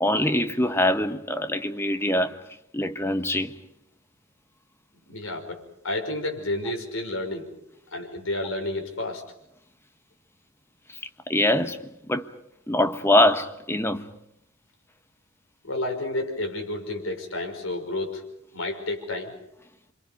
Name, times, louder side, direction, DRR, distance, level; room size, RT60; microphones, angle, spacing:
voice 1, 0.0-2.4 2.7-3.6 11.3-12.3 12.7-14.1, left 1 dB, 10° left, 1.3 m, -23 dB
voice 2, 5.1-7.5 7.9-9.2 15.6-18.2 18.5-19.3, left 2 dB, 90° left, 5.5 m, -30 dB
28.5 x 26.0 x 5.3 m
head